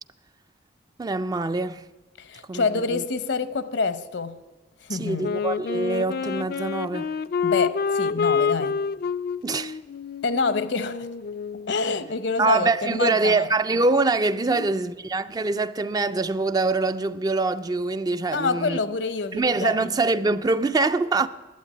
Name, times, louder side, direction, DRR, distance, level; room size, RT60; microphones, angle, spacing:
voice 1, 1.0-1.8 2.5-2.6 2.9-3.0 4.9-7.1 9.4-9.8 12.4-18.8 19.3-21.3, right 3 dB, 20° right, 0.3 m, -24 dB
voice 2, 2.2-4.4 4.8-5.3 7.4-8.8 10.2-11.1 11.7-13.5 14.5-14.7 18.3-19.9, left 4 dB, 75° left, 0.8 m, -27 dB
Wind instrument woodwind instrument, 5.2-11.8, left 6 dB, 55° left, 0.4 m, -28 dB
11.5 x 8.5 x 9.8 m
head